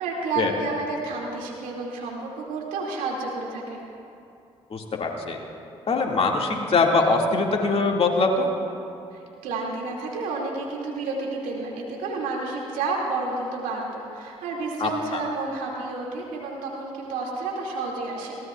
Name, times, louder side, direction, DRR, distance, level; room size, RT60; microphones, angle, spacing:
voice 1, 0.0-3.8 9.1-18.3, right 3 dB, 75° right, -2 dB, 2.5 m, -30 dB
voice 2, 4.7-5.4 5.9-8.5 14.8-15.2, left 3 dB, 45° left, 0 dB, 2.3 m, -22 dB
21.5 x 18.0 x 2.5 m, 2.7 s
hypercardioid pair, 50°, 14 cm